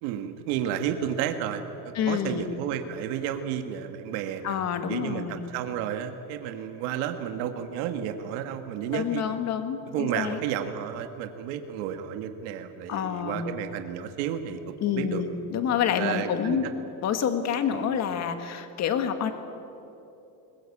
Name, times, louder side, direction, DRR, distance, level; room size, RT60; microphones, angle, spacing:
voice 1, 0.0-4.6 4.9-9.2 9.9-15.2 16.0-16.6 17.7-17.9, right 9 dB, 90° right, 7 dB, 1.8 m, -32 dB
voice 2, 2.0-2.5 4.4-5.4 8.9-10.4 12.9-13.6 14.8-16.7 17.0-19.3, left 8 dB, 40° left, 8 dB, 1.7 m, -28 dB
21.0 x 21.0 x 8.5 m, 2.9 s
cardioid pair, 170°, 42 cm